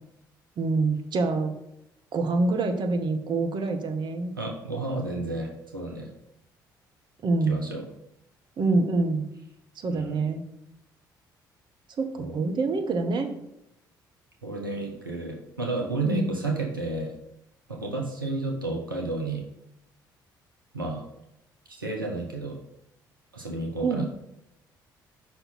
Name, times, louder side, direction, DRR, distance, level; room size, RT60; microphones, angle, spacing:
voice 1, 0.6-1.5 2.1-4.3 7.2-7.6 8.6-9.2 9.8-10.4 12.0-13.3 16.0-16.4 23.8-24.0, right 3 dB, 45° right, 5 dB, 1.0 m, -26 dB
voice 2, 4.4-6.1 7.5-7.9 9.9-10.2 12.2-12.4 14.4-17.2 17.7-19.4 20.7-21.0 21.7-22.6 23.3-24.1, right 2 dB, 90° right, 0 dB, 0.8 m, -31 dB
5.6 x 4.3 x 5.5 m, 0.84 s
figure-of-eight pair, 50°, 11 cm